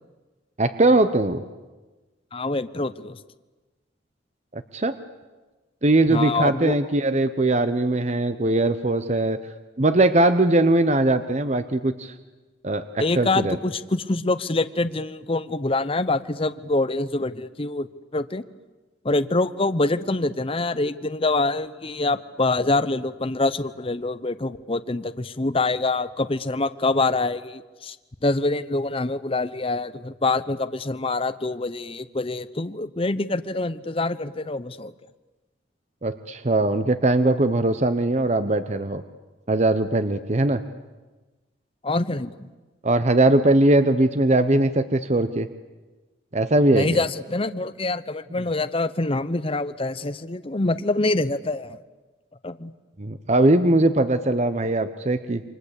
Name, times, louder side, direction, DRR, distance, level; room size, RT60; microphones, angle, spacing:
voice 1, 0.6-1.4 4.5-4.9 5.8-9.4 9.8-12.1 12.6-13.6 36.0-39.0 39.5-40.6 42.8-45.5 46.3-47.0 53.0-55.4, right 2 dB, 40° right, 10 dB, 1.0 m, -20 dB
voice 2, 2.3-3.2 6.1-6.7 13.0-17.9 18.1-18.4 19.0-28.0 28.2-34.9 41.8-42.3 46.7-51.8 52.4-52.7, left 2 dB, 30° left, 11 dB, 0.8 m, -25 dB
28.5 x 24.5 x 8.3 m, 1.2 s
head